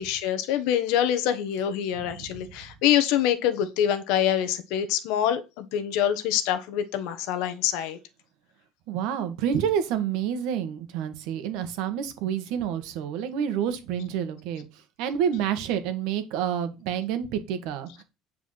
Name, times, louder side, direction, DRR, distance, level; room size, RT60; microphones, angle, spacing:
voice 1, 0.0-8.0, left 10 dB, 65° left, 1.3 m, -25 dB
voice 2, 8.9-14.6 15.0-18.0, right 9 dB, 65° right, 1.7 m, -28 dB
9.0 x 4.8 x 5.9 m
cardioid pair, 170°, 0 cm